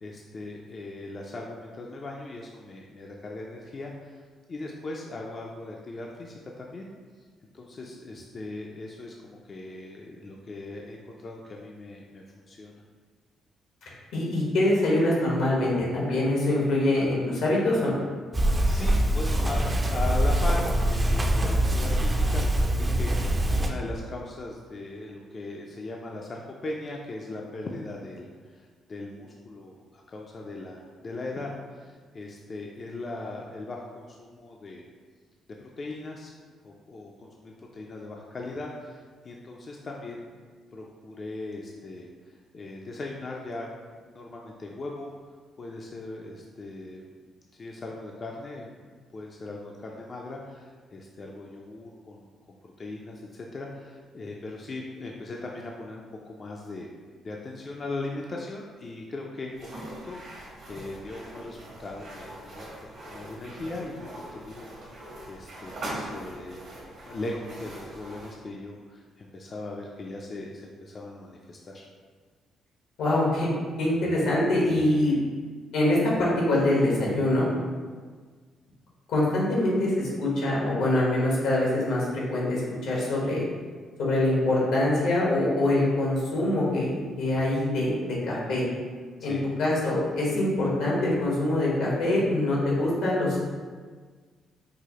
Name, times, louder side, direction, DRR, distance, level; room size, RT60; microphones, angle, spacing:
voice 1, 0.0-4.2 4.5-6.8 7.5-12.8 18.3-28.3 28.5-34.8 35.6-40.3 40.7-43.7 44.0-45.1 45.6-47.0 47.6-56.9 57.2-62.8 63.0-64.7 65.3-66.7 66.9-71.8 89.3-89.5, left 2 dB, 40° left, -1 dB, 0.4 m, -39 dB
voice 2, 14.1-18.0 73.0-73.5 73.8-75.1 75.7-77.5 79.1-83.4 84.0-88.7 89.2-93.4, left 1 dB, 85° left, -5 dB, 1.1 m, -24 dB
sound 1, 18.3-23.7, right 1 dB, 25° right, 0.4 m, -24 dB
sound 2, 59.5-68.4, right 1 dB, 70° right, 1.2 m, -42 dB
4.7 x 2.0 x 2.9 m, 1.5 s
cardioid pair, 90°, 0 cm